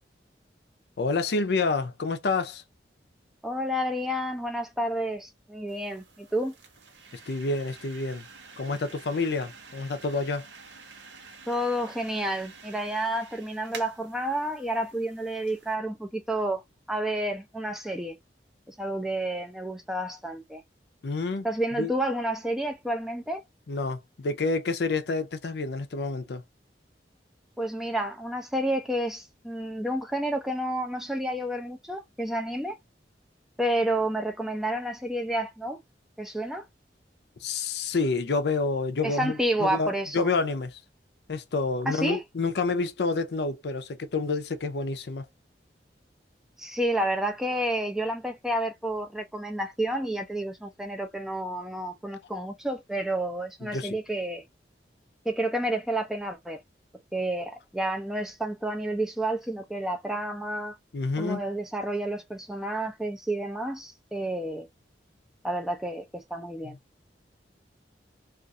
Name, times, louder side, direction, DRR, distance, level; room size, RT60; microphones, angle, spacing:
voice 1, 1.0-2.6 7.3-8.3 8.6-10.5 21.0-21.5 21.8-21.9 23.7-26.4 37.4-40.8 41.3-45.3 53.6-54.0 60.9-61.4, left 3 dB, 65° left, 0.5 m, -28 dB
voice 2, 3.4-6.5 11.5-16.6 16.9-18.2 18.7-20.6 21.4-23.4 27.6-32.8 33.6-35.8 36.2-36.7 39.0-40.3 41.9-42.2 46.6-54.4 55.3-56.6 57.1-60.8 61.2-64.7 65.4-66.8, right 1 dB, ahead, 0.4 m, -30 dB
sound 1, 5.7-15.7, right 4 dB, 90° right, 0.8 m, -49 dB
2.4 x 2.3 x 2.5 m
head